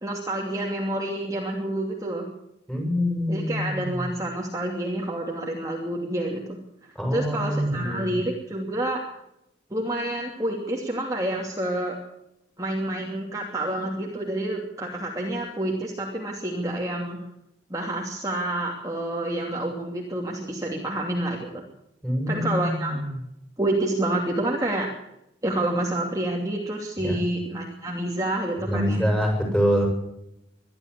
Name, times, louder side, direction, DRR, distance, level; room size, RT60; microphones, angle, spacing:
voice 1, 0.0-2.3 3.3-6.6 7.1-9.0 9.7-12.0 12.6-17.2 17.7-21.6 22.3-23.0 23.6-24.9 25.4-29.1, right 1 dB, 20° right, -1 dB, 2.8 m, -28 dB
voice 2, 2.7-4.1 7.0-8.2 22.0-23.1 27.0-27.2 28.6-29.9, equal, 5° left, 1 dB, 7.4 m, -25 dB
23.5 x 13.0 x 8.5 m, 0.83 s
head